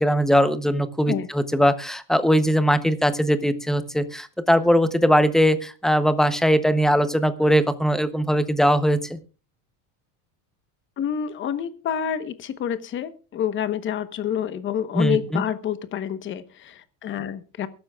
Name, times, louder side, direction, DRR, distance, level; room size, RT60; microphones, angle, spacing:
voice 1, 0.0-9.2 14.9-15.4, equal, ahead, 12 dB, 0.7 m, -20 dB
voice 2, 11.0-17.7, left 9 dB, 30° left, 13 dB, 1.1 m, -28 dB
23.0 x 12.5 x 2.3 m, 0.36 s
cardioid pair, 160°, 41 cm